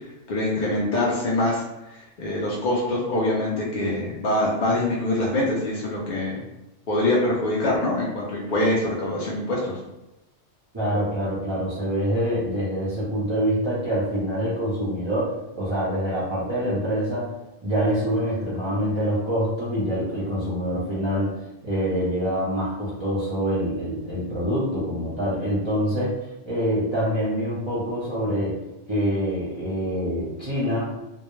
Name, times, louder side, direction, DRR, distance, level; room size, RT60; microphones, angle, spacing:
voice 1, 0.3-6.4 6.9-9.8, left 1 dB, 60° left, -5 dB, 0.5 m, -24 dB
voice 2, 10.7-17.3 17.6-21.3 21.6-26.2 26.4-28.6 28.9-30.9, equal, 30° right, -10 dB, 0.6 m, -25 dB
2.2 x 2.2 x 3.0 m, 0.96 s
omnidirectional pair, 1.3 m